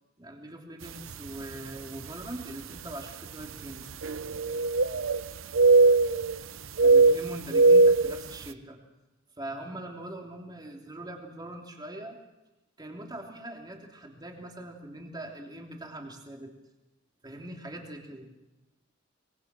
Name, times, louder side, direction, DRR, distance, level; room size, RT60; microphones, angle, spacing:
voice 1, 0.2-3.9 6.8-8.8 9.4-12.2 12.8-16.5 17.2-18.3, right 1 dB, 20° right, 1 dB, 3.2 m, -42 dB
sound 1, 1.1-1.3 2.0-2.1 4.0-5.2 5.5-6.4 6.8-8.2, right 3 dB, 85° right, 0.7 m, -20 dB
24.0 x 22.0 x 6.2 m, 1.0 s
head